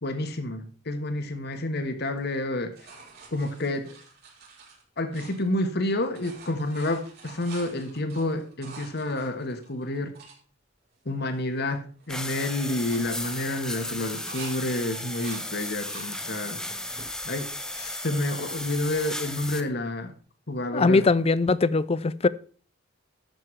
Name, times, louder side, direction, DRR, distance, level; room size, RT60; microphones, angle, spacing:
voice 1, 0.0-2.7 3.3-3.9 5.0-10.2 11.0-16.6 17.2-20.1 20.5-21.1, left 1 dB, 55° left, 1.5 m, -29 dB
sound 1, 2.1-5.8 6.0-10.4 11.0-11.1 11.3-11.7 12.0-12.3 12.7-14.6 14.9-16.1 16.6-17.1 17.7-18.5 20.1-20.2, right 4 dB, 55° right, 4.9 m, -48 dB
sound 2, 12.1-19.6, left 1 dB, 5° left, 0.8 m, -35 dB
voice 2, 20.7-22.3, left 3 dB, 30° left, 0.4 m, -21 dB
12.0 x 7.0 x 4.7 m
head